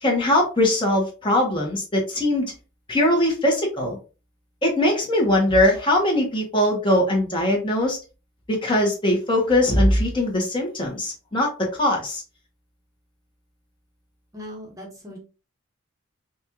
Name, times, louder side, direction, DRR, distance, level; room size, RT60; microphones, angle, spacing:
voice 1, 0.0-2.5 2.9-4.0 4.6-8.0 8.5-12.2, left 1 dB, 25° left, -1 dB, 1.2 m, -21 dB
voice 2, 14.3-15.2, left 1 dB, 15° right, 1 dB, 1.0 m, -39 dB
5.2 x 2.5 x 2.9 m, 0.33 s
head